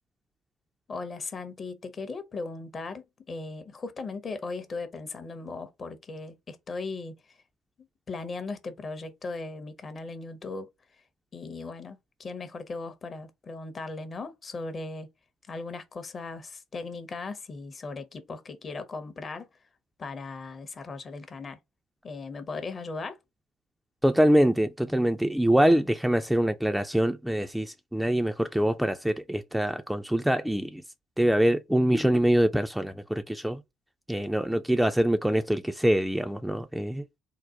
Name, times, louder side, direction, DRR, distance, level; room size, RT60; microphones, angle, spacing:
voice 1, 0.9-7.1 8.1-10.7 11.3-15.1 15.5-19.5 20.0-21.6 22.0-23.2, left 3 dB, 35° left, 0.6 m, -38 dB
voice 2, 24.0-30.8 31.2-33.6 34.1-37.0, right 1 dB, 5° right, 0.3 m, -24 dB
3.8 x 2.1 x 2.7 m
figure-of-eight pair, 50°, 0 cm